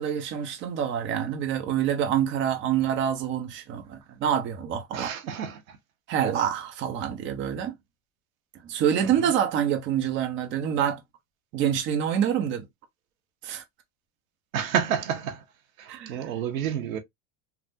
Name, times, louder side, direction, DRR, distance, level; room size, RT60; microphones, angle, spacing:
voice 1, 0.0-5.1 6.1-7.7 8.6-11.0 11.5-12.6 13.4-13.6 15.9-16.3, right 9 dB, 30° right, 0.6 m, -26 dB
voice 2, 4.9-5.8 9.2-9.3 14.5-15.4 15.8-17.0, right 8 dB, 90° right, 0.9 m, -29 dB
3.5 x 2.0 x 2.5 m
supercardioid pair, 135°, 40 cm